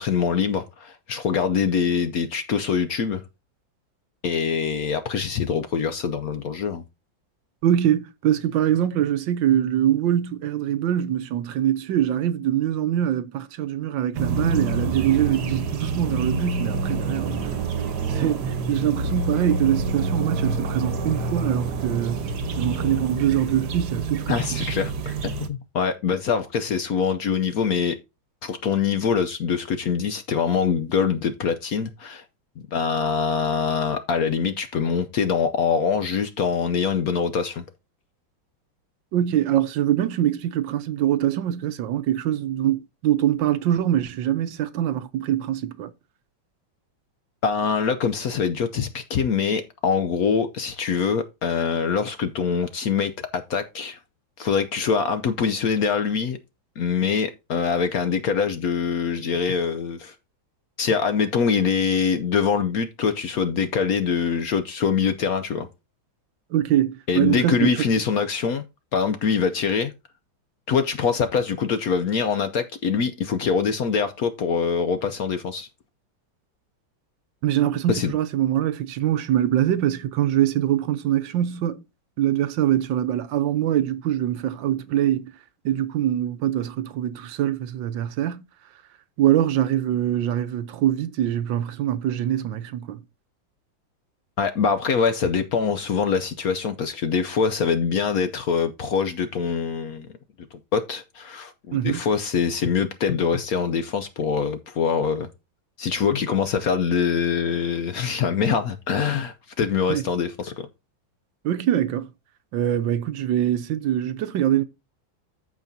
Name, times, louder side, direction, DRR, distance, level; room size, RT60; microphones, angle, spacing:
voice 1, 0.0-3.2 4.2-6.8 24.3-28.0 28.4-32.2 32.7-37.6 47.4-54.0 54.4-56.4 56.8-60.1 60.8-65.7 67.1-68.6 68.9-69.9 70.7-75.7 77.9-78.1 94.4-100.1 100.7-105.3 105.8-110.7, left 6 dB, 65° left, 1.0 m, -24 dB
voice 2, 7.6-17.4 18.1-22.3 22.6-24.6 39.1-45.9 66.5-67.7 77.4-81.8 82.2-85.2 85.6-88.4 89.2-93.0 101.7-102.1 109.9-110.0 111.4-112.1 112.5-114.6, right 11 dB, 75° right, 1.4 m, -23 dB
sound 1, 14.2-25.5, right 4 dB, 60° right, 1.4 m, -27 dB
14.0 x 5.2 x 2.7 m
omnidirectional pair, 2.1 m